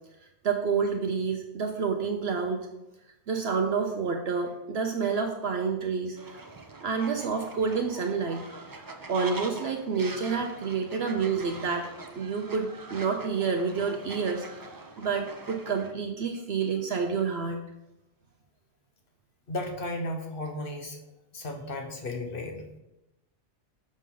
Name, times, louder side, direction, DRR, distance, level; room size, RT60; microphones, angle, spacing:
voice 1, 0.4-2.7 3.3-6.4 6.8-8.4 9.1-11.9 12.2-14.5 15.0-17.6, right 5 dB, 65° right, 3 dB, 0.9 m, -29 dB
Fowl, 6.2-15.9, right 3 dB, 30° right, 0.4 m, -44 dB
voice 2, 19.5-21.0 21.3-22.8, left 1 dB, 50° left, 3 dB, 1.3 m, -34 dB
6.5 x 6.4 x 3.8 m, 0.93 s
omnidirectional pair, 1.2 m